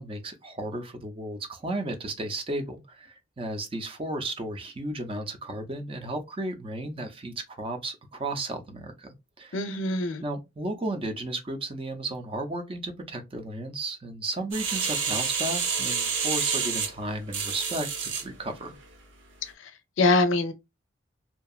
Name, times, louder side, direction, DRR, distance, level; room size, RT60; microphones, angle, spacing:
voice 1, 0.0-9.1 9.4-9.6 10.2-17.9 18.2-18.8, right 2 dB, 25° right, 0.5 m, -34 dB
voice 2, 9.5-10.2 19.6-19.7 20.0-20.5, left 2 dB, 70° left, 0.5 m, -24 dB
sound 1, 14.5-18.3 18.8-18.9, right 6 dB, 70° right, 0.7 m, -28 dB
2.7 x 2.2 x 2.3 m
head